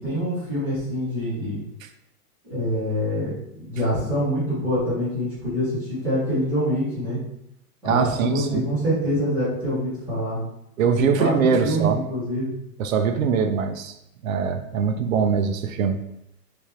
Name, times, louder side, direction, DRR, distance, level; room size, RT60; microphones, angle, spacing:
voice 1, 0.0-1.6 2.5-7.2 7.8-10.4 11.0-11.3 11.6-12.5, equal, 5° right, -13 dB, 0.7 m, -25 dB
voice 2, 7.8-8.6 10.8-12.0 12.8-13.9 14.2-16.0, right 6 dB, 60° right, 7 dB, 0.6 m, -22 dB
3.5 x 3.4 x 4.3 m, 0.80 s
hypercardioid pair, 180°, 46 cm